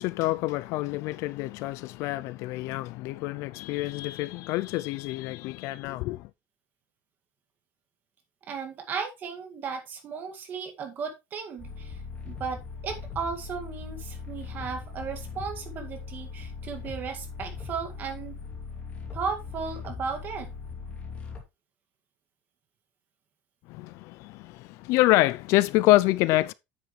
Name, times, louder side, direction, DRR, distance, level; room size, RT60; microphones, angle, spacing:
voice 1, 0.0-6.3 23.7-26.5, left 18 dB, 50° left, 0.4 m, -26 dB
voice 2, 8.5-18.4 19.1-20.5, right 5 dB, 30° right, 2.0 m, -35 dB
sound 1, 11.6-21.4, left 5 dB, 20° left, 2.5 m, -39 dB
9.3 x 7.4 x 3.2 m
cardioid pair, 170°, 6 cm